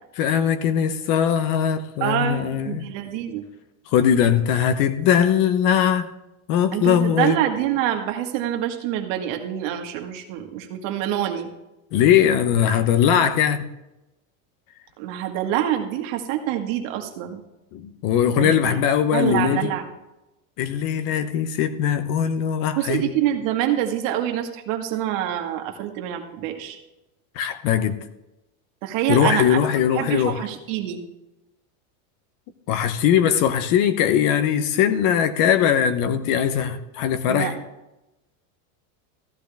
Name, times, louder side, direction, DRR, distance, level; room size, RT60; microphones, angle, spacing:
voice 1, 0.2-2.8 3.9-6.1 6.5-7.4 11.9-13.6 17.7-19.7 20.6-23.0 27.4-28.0 29.1-30.4 32.7-37.6, left 9 dB, 50° left, 0.9 m, -20 dB
voice 2, 2.0-3.5 6.7-11.5 15.0-17.4 18.4-18.8 19.1-19.9 22.8-26.8 28.8-29.6 29.9-31.0 37.3-37.5, right 11 dB, 65° right, 1.8 m, -26 dB
14.5 x 11.5 x 3.5 m
supercardioid pair, 145°, 42 cm